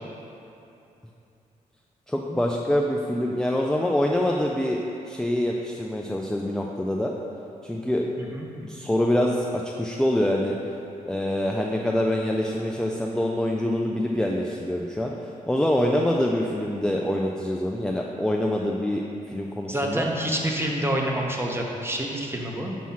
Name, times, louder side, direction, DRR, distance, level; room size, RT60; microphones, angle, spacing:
voice 1, 2.1-4.8 5.1-7.1 7.6-8.1 8.6-10.6 11.1-15.1 15.5-19.0 19.3-20.1, left 1 dB, 5° left, -1 dB, 0.4 m, -25 dB
voice 2, 19.7-22.8, right 1 dB, 15° right, 0 dB, 0.9 m, -27 dB
7.2 x 3.0 x 5.6 m, 2.8 s
cardioid pair, 65°, 15 cm